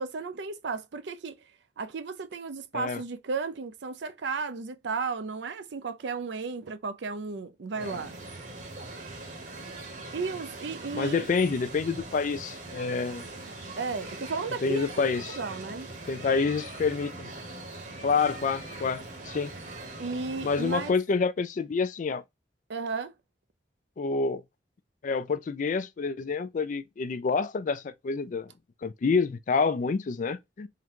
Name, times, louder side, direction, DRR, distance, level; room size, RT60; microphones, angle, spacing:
voice 1, 0.0-1.4 1.8-8.2 10.1-11.3 13.8-15.9 20.0-21.0 22.7-23.1, right 4 dB, 70° right, 0.5 m, -34 dB
sound 1, 7.8-20.9, right 2 dB, 45° right, 1.1 m, -41 dB
voice 2, 10.9-13.2 14.6-15.4 16.1-17.3 18.0-19.5 20.4-22.2 24.0-24.4 25.0-28.5 28.8-30.7, left 4 dB, 45° left, 0.4 m, -28 dB
3.8 x 2.2 x 4.5 m
head